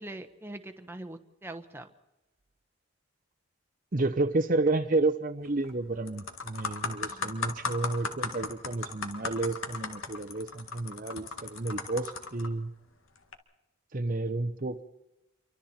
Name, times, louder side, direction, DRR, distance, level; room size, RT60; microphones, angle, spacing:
voice 1, 0.0-1.9 7.1-7.3, right 1 dB, 10° right, 6 dB, 1.1 m, -43 dB
voice 2, 3.9-12.7 13.9-14.8, right 2 dB, 40° right, 7 dB, 0.8 m, -30 dB
sound 1, 5.4-5.7 6.1-12.5 13.2-13.3, left 4 dB, 75° left, 2.0 m, -36 dB
28.5 x 24.0 x 4.4 m, 0.95 s
head